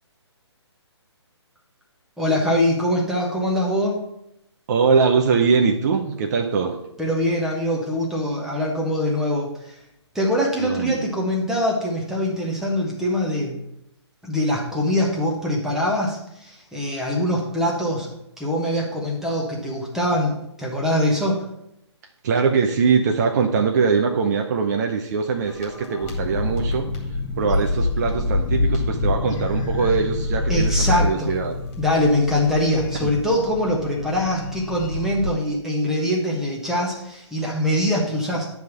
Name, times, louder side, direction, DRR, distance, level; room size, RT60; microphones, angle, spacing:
voice 1, 2.2-4.0 7.0-9.7 10.1-13.6 14.2-18.1 18.4-21.4 30.5-31.3 31.8-38.4, left 1 dB, 5° right, -2 dB, 1.2 m, -23 dB
voice 2, 4.7-6.8 10.6-11.0 22.2-26.9 27.4-31.5 33.0-33.1, right 5 dB, 35° right, 2 dB, 0.6 m, -22 dB
sound 1, 25.4-35.3, left 2 dB, 25° left, 2.0 m, -26 dB
9.2 x 3.5 x 5.9 m, 0.80 s
figure-of-eight pair, 140°, 15 cm